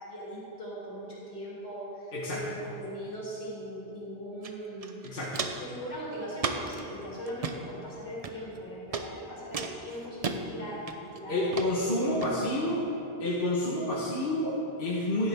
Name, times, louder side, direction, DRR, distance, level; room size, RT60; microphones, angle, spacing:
voice 1, 0.0-5.1 5.6-12.7, equal, 80° left, -7 dB, 2.9 m, -40 dB
Walk footsteps, 4.4-4.5 4.8-5.7 6.4-6.8 7.3-7.6 8.2-8.6 8.9-9.1 9.5-10.4 10.9-11.2 11.5-11.7 12.2-12.3, right 5 dB, 45° right, 0.6 m, -34 dB
voice 2, 5.0-5.5 11.3-12.8 13.2-15.3, left 1 dB, 60° left, -5 dB, 1.3 m, -29 dB
11.0 x 10.0 x 3.5 m, 2.8 s
omnidirectional pair, 1.0 m